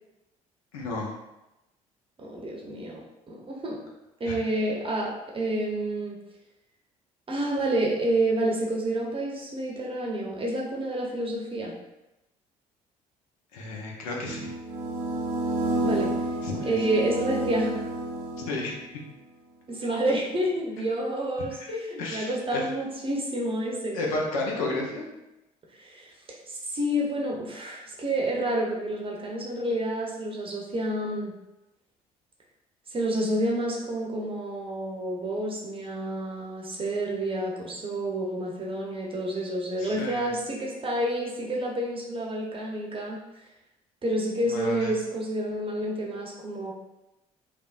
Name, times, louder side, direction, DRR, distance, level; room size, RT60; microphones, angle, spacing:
voice 1, 0.7-1.2 4.3-4.4 13.5-14.5 16.4-16.7 18.4-18.8 21.7-22.6 23.9-25.1 39.8-40.3 44.5-45.0, left 2 dB, 75° left, -2 dB, 0.6 m, -32 dB
voice 2, 2.2-3.8 4.2-6.2 7.3-11.7 15.8-16.1 16.7-17.8 19.7-21.5 21.9-24.2 24.5-24.6 25.7-26.1 26.5-31.3 32.9-43.2 44.0-46.7, right 1 dB, 30° right, -2 dB, 0.7 m, -29 dB
sound 1, 14.2-18.9, right 1 dB, 75° right, 0.5 m, -30 dB
3.3 x 2.1 x 2.4 m, 0.96 s
figure-of-eight pair, 50°, 18 cm